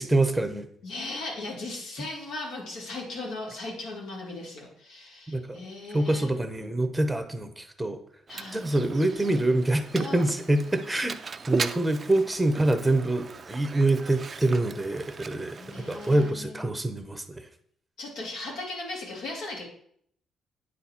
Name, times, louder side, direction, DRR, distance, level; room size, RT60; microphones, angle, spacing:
voice 1, 0.0-0.7 5.3-5.6 5.9-8.0 8.5-11.2 11.5-15.6 15.9-17.2, right 2 dB, 5° right, 7 dB, 0.7 m, -25 dB
voice 2, 0.8-6.3 8.3-8.7 10.0-10.3 15.5-16.7 18.0-19.7, left 2 dB, 85° left, -2 dB, 2.2 m, -37 dB
Mechanisms, 8.3-16.3, right 5 dB, 30° right, 0.3 m, -38 dB
8.9 x 4.1 x 4.2 m, 0.66 s
cardioid pair, 120°, 0 cm